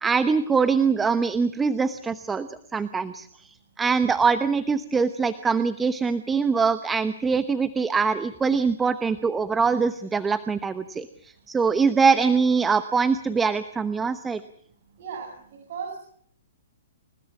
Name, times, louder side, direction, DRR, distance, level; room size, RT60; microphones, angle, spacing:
voice 1, 0.0-14.4, right 5 dB, 10° right, 12 dB, 1.0 m, -23 dB
voice 2, 15.0-16.0, right 6 dB, 55° right, 2 dB, 7.9 m, -36 dB
29.0 x 17.5 x 7.3 m, 0.64 s
hypercardioid pair, 145°, 0 cm